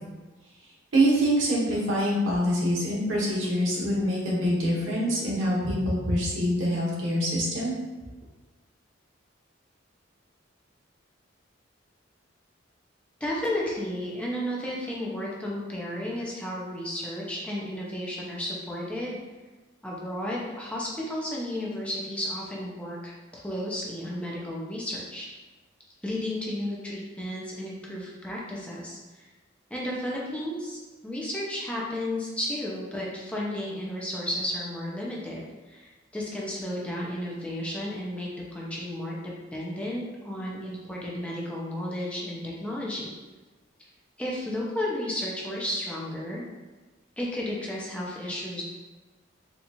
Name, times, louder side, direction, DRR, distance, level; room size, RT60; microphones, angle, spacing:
voice 1, 0.9-7.7, equal, 85° right, -5 dB, 1.1 m, -25 dB
voice 2, 13.2-19.2 19.8-25.3 26.0-29.3 29.7-30.8 31.0-39.2 39.5-43.1 44.2-46.4 47.2-48.6, left 1 dB, 5° left, -5 dB, 0.5 m, -33 dB
4.2 x 2.4 x 2.8 m, 1.2 s
head